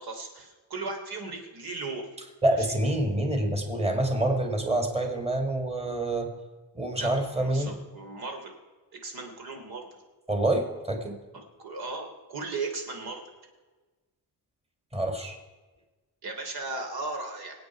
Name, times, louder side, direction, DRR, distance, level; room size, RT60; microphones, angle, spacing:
voice 1, 0.0-2.1 2.6-2.7 7.0-8.5 8.9-10.0 11.3-13.2 16.2-17.5, right 3 dB, 70° right, 3 dB, 3.3 m, -37 dB
voice 2, 2.4-6.3 6.8-7.8 10.3-11.2 14.9-15.4, right 1 dB, 15° right, 4 dB, 2.1 m, -27 dB
26.0 x 8.7 x 4.7 m, 1.3 s
cardioid pair, 135°, 39 cm